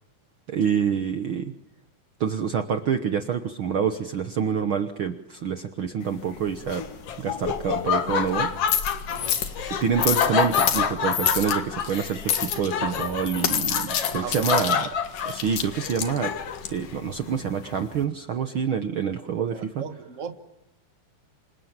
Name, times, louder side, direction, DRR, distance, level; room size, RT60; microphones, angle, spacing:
voice 1, 0.5-1.5 2.2-6.9 7.2-8.5 9.7-14.9 15.2-16.3 16.7-19.8, right 7 dB, 85° right, 1.1 m, -27 dB
sound 1, 6.0-18.0, left 9 dB, 70° left, 3.4 m, -30 dB
Laughter, 6.7-16.7, left 6 dB, 55° left, 2.1 m, -28 dB
voice 2, 9.1-9.4 14.2-14.7 19.5-20.4, right 7 dB, 50° right, 0.9 m, -37 dB
28.0 x 27.0 x 7.4 m
omnidirectional pair, 4.1 m